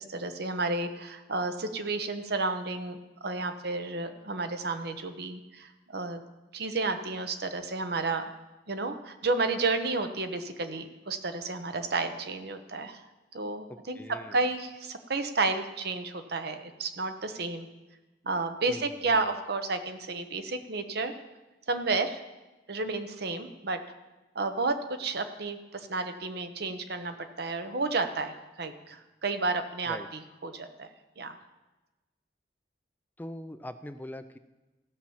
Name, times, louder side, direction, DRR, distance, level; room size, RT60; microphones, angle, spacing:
voice 1, 0.0-6.2 6.5-8.3 8.7-13.0 13.3-14.0 14.3-17.7 18.2-21.1 21.7-22.2 22.7-23.8 24.3-30.0 30.4-30.9 31.2-31.4, right 3 dB, 65° right, 8 dB, 0.9 m, -31 dB
voice 2, 13.7-14.4 18.7-19.3 29.9-30.1 33.2-34.4, left 1 dB, 10° left, 10 dB, 0.4 m, -42 dB
15.5 x 5.8 x 7.1 m, 1.1 s
head